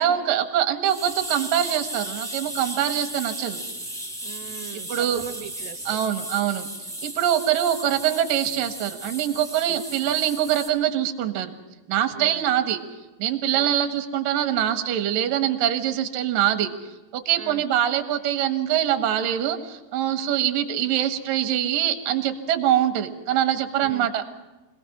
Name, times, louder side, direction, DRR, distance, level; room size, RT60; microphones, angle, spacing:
voice 1, 0.0-3.6 4.7-5.2 5.9-6.7 7.0-11.6 11.9-12.8 13.2-24.2, right 11 dB, 60° right, 7 dB, 2.9 m, -24 dB
sound 1, 0.8-10.7, right 1 dB, ahead, 2.1 m, -35 dB
voice 2, 4.2-6.1 9.7-9.8 12.1-12.4 13.5-13.7 17.4-17.6 23.8-24.1, right 11 dB, 80° right, 9 dB, 2.9 m, -40 dB
25.5 x 18.0 x 6.1 m, 1.1 s
omnidirectional pair, 4.8 m